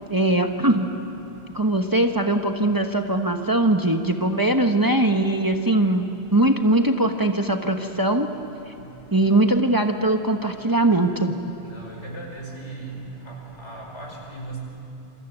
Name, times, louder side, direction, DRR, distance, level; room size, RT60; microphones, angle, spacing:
voice 1, 0.1-0.9 1.5-6.1 6.3-8.3 9.1-11.3, right 1 dB, 20° right, 5 dB, 1.1 m, -21 dB
voice 2, 11.7-12.8 13.3-14.6, right 2 dB, 85° left, 0 dB, 5.7 m, -37 dB
27.5 x 26.5 x 8.1 m, 2.8 s
omnidirectional pair, 1.2 m